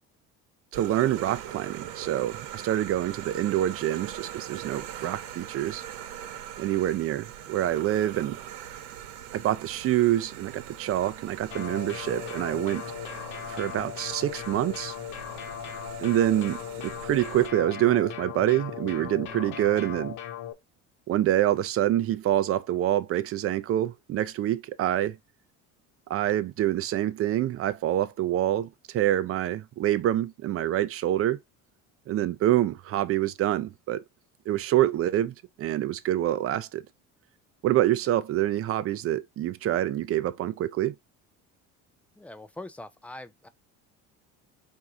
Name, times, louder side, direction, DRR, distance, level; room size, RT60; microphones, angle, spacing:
voice 1, 0.7-5.8 6.6-8.4 9.3-12.8 13.5-14.9 16.0-20.2 21.1-25.2 26.1-31.4 32.1-34.0 34.5-36.8 37.6-40.9, right 13 dB, 45° right, 0.5 m, -26 dB
sound 1, 0.7-17.5, right 10 dB, 90° right, 1.0 m, -41 dB
sound 2, 11.5-20.5, left 10 dB, 65° left, 1.0 m, -38 dB
voice 2, 42.2-43.5, left 2 dB, 5° left, 0.4 m, -42 dB
4.6 x 2.7 x 3.6 m
cardioid pair, 120°, 32 cm